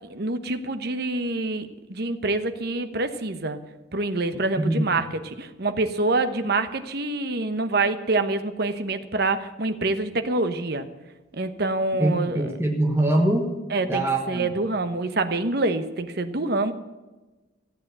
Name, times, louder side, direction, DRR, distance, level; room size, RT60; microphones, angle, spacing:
voice 1, 0.1-3.6 3.9-5.1 5.4-10.9 11.3-12.5 13.7-16.7, right 2 dB, 55° right, 9 dB, 1.0 m, -26 dB
voice 2, 12.0-13.5 13.8-14.5, right 1 dB, 15° right, 1 dB, 1.2 m, -23 dB
14.5 x 8.4 x 7.7 m, 1.2 s
head